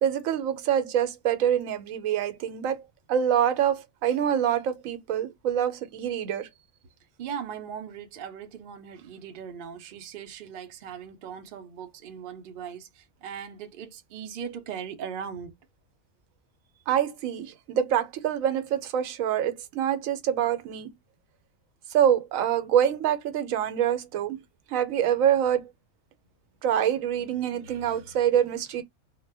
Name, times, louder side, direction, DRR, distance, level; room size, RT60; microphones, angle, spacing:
voice 1, 0.0-6.5 16.9-20.9 21.9-24.4 24.7-25.7 26.6-28.8, right 9 dB, 80° right, 1.0 m, -25 dB
voice 2, 7.2-15.6, right 7 dB, 60° right, 0.5 m, -39 dB
2.1 x 2.0 x 3.2 m
omnidirectional pair, 1.4 m